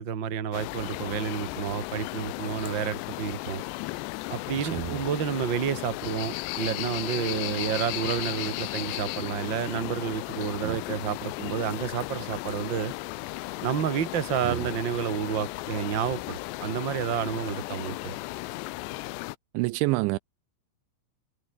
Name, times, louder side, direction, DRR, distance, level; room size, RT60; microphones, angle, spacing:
voice 1, 0.0-3.6 4.3-12.9 13.6-18.1, right 8 dB, 60° right, 1.2 m, -30 dB
sound 1, 0.5-19.4, left 20 dB, 80° left, 2.6 m, -35 dB
voice 2, 4.6-5.0 10.6-10.8 14.4-14.6 19.5-20.2, right 21 dB, 85° right, 2.9 m, -28 dB
omnidirectional pair, 5.5 m